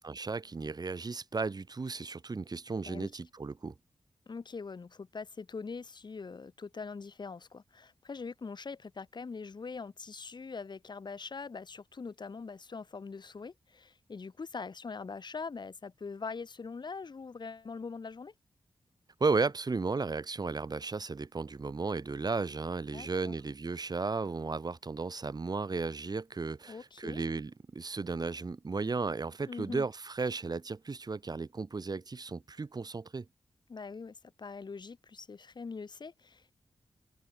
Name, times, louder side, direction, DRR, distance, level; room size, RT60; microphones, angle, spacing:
voice 1, 0.0-3.7 19.2-33.2, right 4 dB, 45° right, 1.3 m, -34 dB
voice 2, 4.3-18.3 22.9-23.3 26.7-27.2 29.5-29.8 33.7-36.5, left 4 dB, 50° left, 1.1 m, -43 dB
cardioid pair, 45°, 10 cm